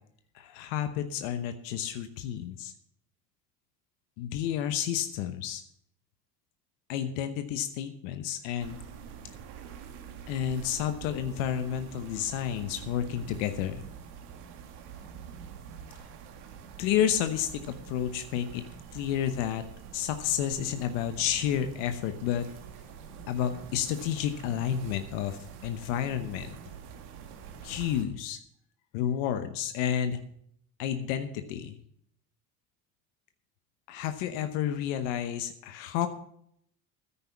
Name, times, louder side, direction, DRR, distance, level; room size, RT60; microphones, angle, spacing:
voice 1, 0.3-2.7 4.2-5.6 6.9-8.8 10.3-13.8 16.8-17.6 17.9-18.6 18.9-19.6 19.9-22.5 23.3-26.6 27.6-28.4 28.9-30.2 30.8-31.8 33.9-36.1, left 10 dB, 90° left, 9 dB, 1.0 m, -30 dB
sound 1, 8.6-28.0, right 7 dB, 85° right, 1.9 m, -46 dB
9.8 x 9.7 x 7.0 m, 0.69 s
supercardioid pair, 85°, 38 cm